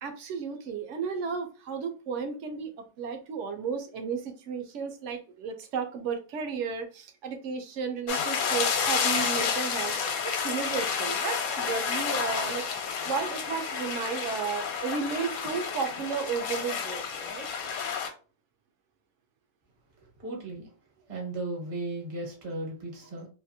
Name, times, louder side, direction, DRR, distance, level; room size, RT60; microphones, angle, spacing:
voice 1, 0.0-2.7 3.0-9.9 10.2-12.6 13.0-17.5, right 6 dB, 65° right, 0.9 m, -33 dB
sound 1, 8.1-18.1, left 6 dB, 85° left, 1.1 m, -30 dB
voice 2, 20.2-20.7 21.1-23.3, right 2 dB, 45° right, 1.1 m, -35 dB
2.8 x 2.5 x 2.7 m
omnidirectional pair, 1.5 m